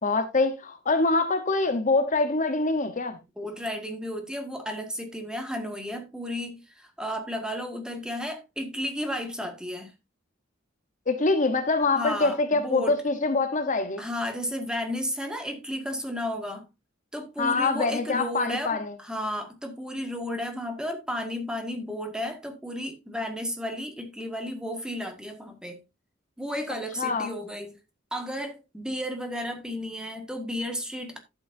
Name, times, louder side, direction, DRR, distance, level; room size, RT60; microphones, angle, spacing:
voice 1, 0.0-3.2 11.1-14.0 17.4-18.9 27.0-27.3, left 3 dB, 40° left, 1.0 m, -24 dB
voice 2, 3.4-9.9 11.9-13.0 14.0-16.7 17.1-25.8 26.4-27.8 28.1-31.2, equal, 5° right, 1.7 m, -33 dB
12.0 x 8.5 x 2.7 m
head